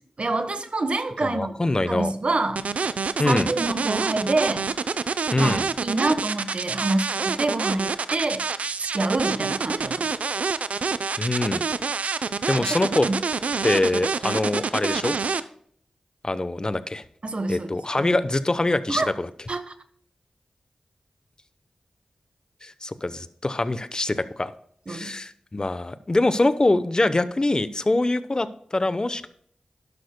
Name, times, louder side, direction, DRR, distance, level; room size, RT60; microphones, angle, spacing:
voice 1, 0.2-1.6 1.9-2.7 3.2-4.7 5.4-5.6 5.8-8.4 8.9-10.2 12.6-12.7 13.1-13.2 17.2-18.2 18.9-19.1 19.5-19.7 24.9-25.2, right 2 dB, 55° right, 9 dB, 1.2 m, -27 dB
voice 2, 1.2-2.1 3.2-3.5 5.3-5.7 11.2-11.6 12.5-13.1 13.6-15.2 16.2-17.0 17.5-19.3 22.6-24.5 24.9-29.3, left 2 dB, 35° left, 13 dB, 0.9 m, -24 dB
sound 1, 2.6-15.4, right 5 dB, 80° right, 0.6 m, -27 dB
12.0 x 11.5 x 2.2 m, 0.64 s
cardioid pair, 50°, 2 cm